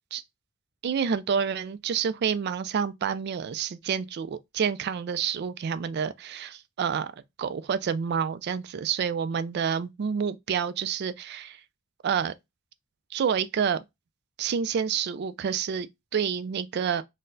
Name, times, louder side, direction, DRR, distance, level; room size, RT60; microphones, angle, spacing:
voice 1, 0.8-7.1 7.4-11.6 12.0-12.3 13.1-13.8 14.4-17.0, right 7 dB, 50° right, 0.3 m, -28 dB
4.1 x 2.1 x 2.6 m
head